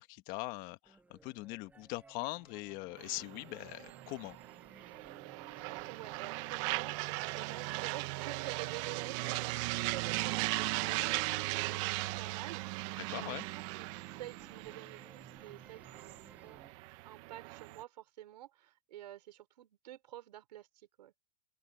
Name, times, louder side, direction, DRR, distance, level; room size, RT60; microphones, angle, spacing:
voice 1, 0.0-4.4 13.1-13.4, left 21 dB, 45° left, 1.3 m, -42 dB
sound 1, 0.9-16.7, right 3 dB, 10° right, 1.7 m, -60 dB
sound 2, 3.0-17.8, right 22 dB, 50° right, 1.2 m, -38 dB
voice 2, 5.9-13.9 14.2-16.6 17.0-21.1, right 13 dB, 80° right, 4.1 m, -49 dB
open air
supercardioid pair, 140°, 21 cm